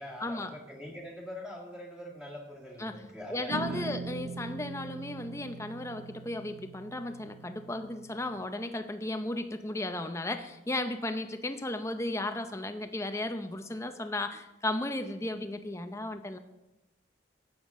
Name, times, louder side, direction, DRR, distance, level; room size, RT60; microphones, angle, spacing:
voice 1, 0.0-3.9, left 1 dB, 5° right, -2 dB, 1.8 m, -43 dB
voice 2, 3.3-16.4, left 2 dB, 15° left, 8 dB, 0.6 m, -35 dB
sound 1, 3.5-8.5, right 3 dB, 80° right, 0.6 m, -41 dB
13.0 x 8.8 x 3.6 m, 1.0 s
head